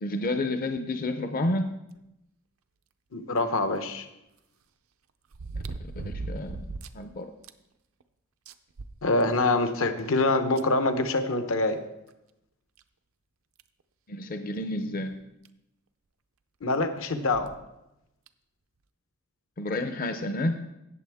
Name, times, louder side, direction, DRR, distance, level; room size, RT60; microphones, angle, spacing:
voice 1, 0.0-1.7 6.0-6.6 6.9-7.3 14.1-15.2 19.6-20.6, left 1 dB, 45° left, 7 dB, 0.6 m, -30 dB
voice 2, 3.1-4.1 9.0-11.8 16.6-17.5, left 2 dB, 75° left, 9 dB, 0.9 m, -25 dB
sound 1, 3.4-3.5 5.3-7.0 7.4-7.5 8.0-8.1 8.5-9.6 10.6-10.7 12.1-12.2 12.8-12.9 13.6-13.8 15.1-15.2 15.4-15.5 17.2-17.6 18.3-18.4, right 3 dB, 85° right, 0.6 m, -38 dB
17.0 x 7.0 x 3.5 m, 0.88 s
head